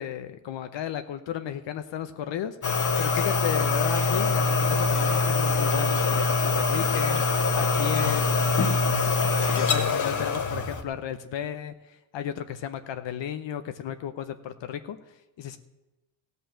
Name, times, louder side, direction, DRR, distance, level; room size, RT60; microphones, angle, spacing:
voice 1, 0.0-15.6, left 10 dB, 65° left, 9 dB, 0.9 m, -34 dB
sound 1, 2.6-10.8, left 4 dB, 40° left, 1.4 m, -24 dB
15.5 x 5.5 x 8.7 m, 1.1 s
cardioid pair, 95°, 47 cm